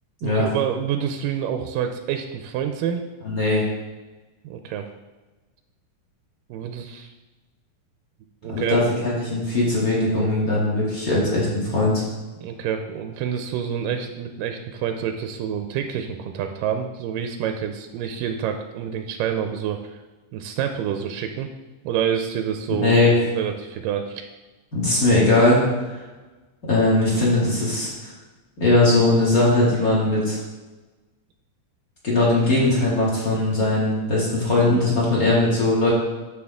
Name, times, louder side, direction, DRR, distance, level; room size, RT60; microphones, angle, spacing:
voice 1, 0.2-3.0 4.4-4.9 6.5-7.1 8.4-8.8 12.4-19.8 20.3-21.5 21.8-24.3, right 8 dB, 85° right, 6 dB, 2.2 m, -27 dB
voice 2, 3.2-3.6 8.5-12.0 22.8-23.2 24.7-25.6 26.7-28.1 28.6-30.4 32.0-35.9, left 2 dB, 30° left, -5 dB, 2.2 m, -19 dB
9.5 x 6.7 x 3.6 m, 1.2 s
omnidirectional pair, 3.9 m